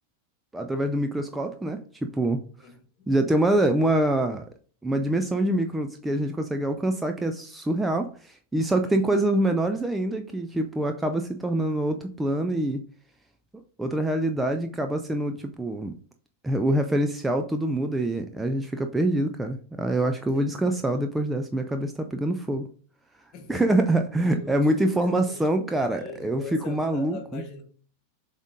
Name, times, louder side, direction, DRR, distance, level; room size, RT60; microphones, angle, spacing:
voice 1, 0.5-2.4 3.1-4.4 4.8-12.8 13.8-16.0 16.4-22.7 23.5-27.4, right 1 dB, 5° right, 0.5 m, -25 dB
voice 2, 2.6-3.1 8.8-9.1 15.4-15.5 20.3-20.9 23.3-27.6, left 4 dB, 35° left, 2.0 m, -43 dB
7.2 x 3.7 x 3.8 m
figure-of-eight pair, 90°, 0 cm